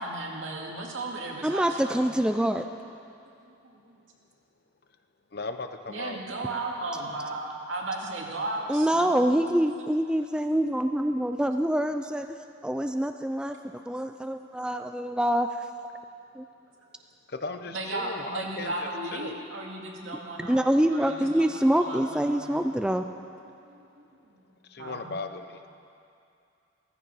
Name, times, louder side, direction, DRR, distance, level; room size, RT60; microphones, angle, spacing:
voice 1, 0.0-2.2 3.4-4.0 5.9-9.3 17.7-22.6 23.6-24.5 24.8-25.2, right 2 dB, 85° right, -1 dB, 2.2 m, -36 dB
voice 2, 1.4-2.7 8.7-15.7 16.3-16.5 20.4-23.0, right 1 dB, 5° right, 6 dB, 0.4 m, -26 dB
voice 3, 5.3-6.2 17.3-18.7 19.1-19.4 24.7-25.6, left 3 dB, 55° left, 8 dB, 0.8 m, -36 dB
15.5 x 14.5 x 5.6 m, 2.5 s
head